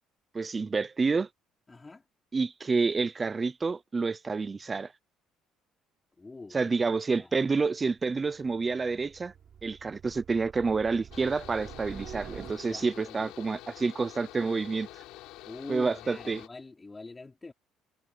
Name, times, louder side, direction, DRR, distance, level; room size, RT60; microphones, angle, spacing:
voice 1, 0.3-1.3 2.3-4.9 6.5-9.3 9.6-14.9 15.7-16.4, right 4 dB, 15° right, 0.5 m, -28 dB
voice 2, 1.7-2.1 6.2-6.7 7.1-7.4 12.6-13.3 15.4-17.5, left 3 dB, 15° left, 4.7 m, -45 dB
sound 1, 8.0-13.1, right 8 dB, 35° right, 6.3 m, -47 dB
Mechanical fan, 11.1-16.5, left 17 dB, 85° left, 4.0 m, -47 dB
cardioid pair, 175°, 0 cm